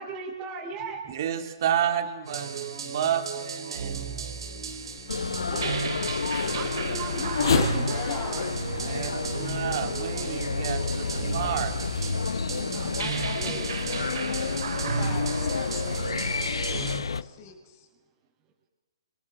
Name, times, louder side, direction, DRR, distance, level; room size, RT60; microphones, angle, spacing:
voice 1, 0.0-1.1 5.5-5.8 6.5-8.4 12.7-12.9 13.3-13.6 17.4-17.5, right 4 dB, 25° right, -5 dB, 7.5 m, -38 dB
voice 2, 1.1-4.1 8.7-11.7, right 9 dB, 50° right, 7 dB, 3.9 m, -30 dB
sound 1, 2.2-17.0, right 5 dB, 70° right, 4.5 m, -34 dB
Race car auto racing / Accelerating revving vroom, 3.3-11.1 11.8-11.9 12.5-17.2, left 6 dB, 70° left, 5.3 m, -35 dB
sound 2, 5.1-17.2, left 5 dB, 85° left, 0.9 m, -31 dB
voice 3, 7.7-8.5 11.1-11.7 12.2-15.4 17.1-17.9, left 8 dB, 40° left, 4 dB, 7.5 m, -43 dB
29.5 x 27.0 x 6.3 m, 1.2 s
hypercardioid pair, 135°, 3 cm